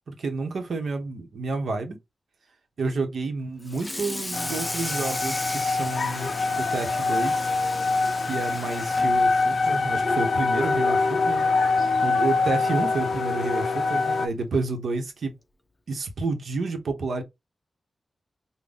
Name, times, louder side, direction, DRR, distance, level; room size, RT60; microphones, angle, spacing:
voice 1, 0.1-2.0 2.8-7.5 8.2-11.5 12.0-15.3 15.9-17.2, right 3 dB, 70° right, 0.9 m, -30 dB
Water tap faucet / Sink (filling or washing), 3.6-10.3 10.7-10.9 11.3-11.4 11.8-11.9 13.0-13.1 13.6-13.8, left 1 dB, 10° left, 0.5 m, -36 dB
sound 1, 4.3-14.3, left 3 dB, 70° left, 0.4 m, -24 dB
3.8 x 2.2 x 3.4 m
wide cardioid pair, 120°, 0 cm